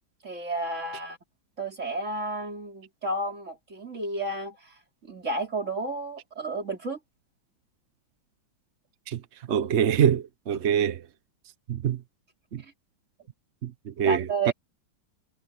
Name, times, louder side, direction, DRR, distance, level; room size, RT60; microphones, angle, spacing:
voice 1, 0.2-1.2 1.6-4.6 5.0-7.0 14.1-14.5, right 2 dB, 35° right, 4.4 m, -31 dB
voice 2, 9.5-11.0 11.7-12.0 12.5-12.6 13.6-14.5, right 8 dB, 55° right, 0.8 m, -25 dB
omnidirectional pair, 2.1 m